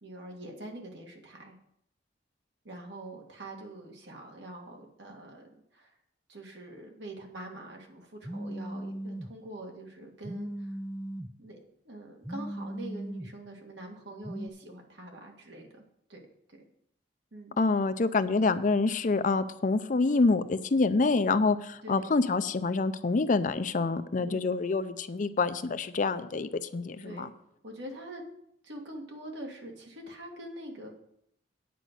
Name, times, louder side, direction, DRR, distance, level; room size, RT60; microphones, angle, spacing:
voice 1, 0.0-1.6 2.6-5.9 6.3-10.7 11.4-15.8 16.1-16.2 16.5-16.6 17.3-17.6 21.8-22.2 24.2-24.6 27.0-27.3 27.6-28.3 28.6-31.0, right 1 dB, 75° right, 1 dB, 1.9 m, -44 dB
Telephone, 8.2-9.3 10.2-11.3 12.2-13.3 14.2-14.5, right 1 dB, 5° right, 0.4 m, -37 dB
voice 2, 17.6-27.3, left 3 dB, 45° left, 12 dB, 0.5 m, -27 dB
9.2 x 5.1 x 7.9 m, 0.75 s
head